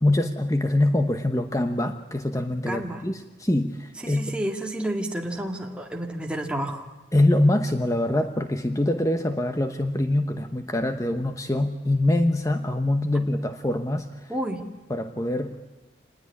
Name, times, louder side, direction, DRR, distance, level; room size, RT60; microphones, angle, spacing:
voice 1, 0.0-4.2 7.1-14.3 14.9-15.6, left 1 dB, 15° left, 7 dB, 1.0 m, -24 dB
voice 2, 2.7-3.0 4.0-6.9 13.1-13.2 14.3-14.6, right 1 dB, 5° right, 1 dB, 2.0 m, -30 dB
26.5 x 20.5 x 9.7 m, 1.2 s
head